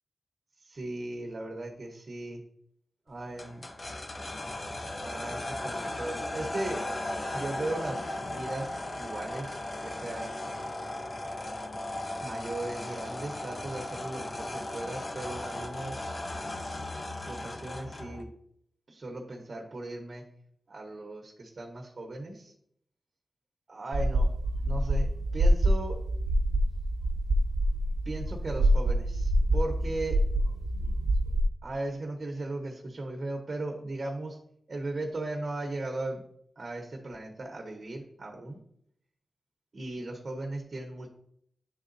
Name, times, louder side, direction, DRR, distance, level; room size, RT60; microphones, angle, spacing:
voice 1, 0.6-2.4 3.1-3.7 5.0-6.8 7.3-10.5 12.2-16.9 17.3-18.3 18.9-20.3 20.7-22.5 23.7-24.3 24.6-26.0 28.0-30.2 31.6-34.4 34.7-36.2 36.6-38.6 39.7-41.1, right 2 dB, 50° right, 1 dB, 0.9 m, -37 dB
sound 1, 3.4-18.2, left 1 dB, 40° left, 0.7 m, -37 dB
sound 2, 23.9-31.4, right 1 dB, 90° right, 0.8 m, -26 dB
9.7 x 3.9 x 2.6 m, 0.70 s
cardioid pair, 65°, 0 cm